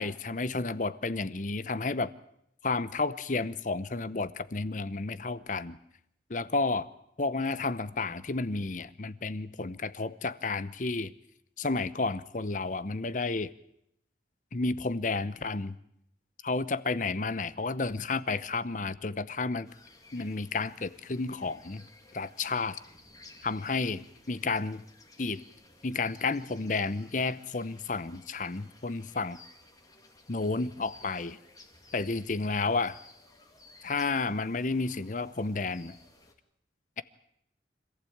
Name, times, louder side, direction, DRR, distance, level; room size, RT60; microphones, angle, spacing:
voice 1, 0.0-2.1 2.6-5.8 6.3-6.9 7.2-11.1 11.6-13.5 14.5-15.8 16.4-19.7 20.1-21.8 22.1-22.8 23.4-24.8 25.2-25.4 25.8-29.4 30.3-31.4 31.9-33.0 33.8-35.9, left 3 dB, 45° left, 17 dB, 0.8 m, -31 dB
sound 1, 19.6-36.3, left 2 dB, 20° left, 2.2 m, -57 dB
26.0 x 15.0 x 8.7 m, 0.76 s
head